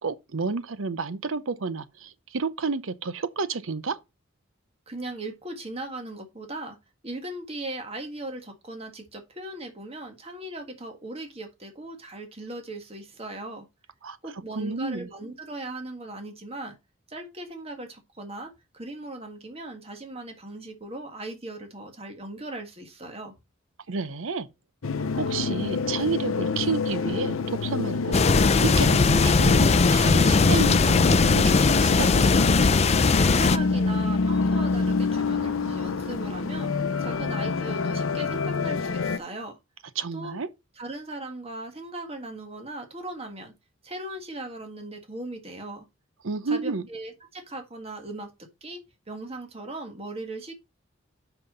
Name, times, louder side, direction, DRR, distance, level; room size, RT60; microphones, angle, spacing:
voice 1, 0.0-4.0 14.0-14.2 14.6-15.1 23.9-24.5 25.1-32.1 40.0-40.5 46.2-46.8, right 4 dB, 75° right, 0.7 m, -30 dB
voice 2, 4.9-6.8 7.0-13.7 14.2-16.8 17.1-23.3 33.1-36.7 37.0-39.6 40.1-40.3 40.7-43.5 43.8-45.8 46.4-48.8 49.1-50.5, right 2 dB, 30° right, 1.7 m, -38 dB
sound 1, 24.8-39.2, left 4 dB, 80° left, 0.7 m, -26 dB
sound 2, 28.1-33.6, left 4 dB, 30° left, 0.4 m, -20 dB
5.8 x 5.8 x 5.2 m
head